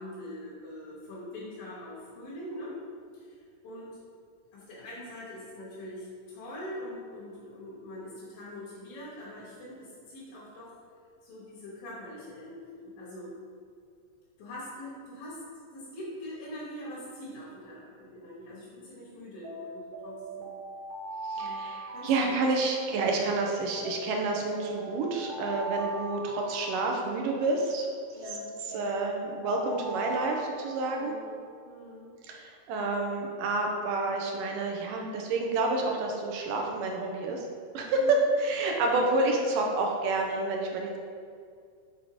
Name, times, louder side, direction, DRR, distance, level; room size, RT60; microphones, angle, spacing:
voice 1, 0.0-2.8 3.1-3.4 3.6-3.9 4.5-10.7 11.2-13.3 14.4-15.4 15.7-20.5 21.4-21.7 21.9-22.4 28.1-28.9 30.9-32.1 37.9-38.2, left 1 dB, 90° left, -8 dB, 3.1 m, -43 dB
Alarm, 19.4-23.1 23.8-27.5 28.2-31.4, right 2 dB, 55° right, 1.7 m, -40 dB
voice 2, 21.3-27.9 28.3-31.1 32.2-37.5 37.7-41.0, right 3 dB, 80° right, 1 dB, 2.4 m, -29 dB
7.3 x 3.7 x 4.9 m, 2.3 s
omnidirectional pair, 3.8 m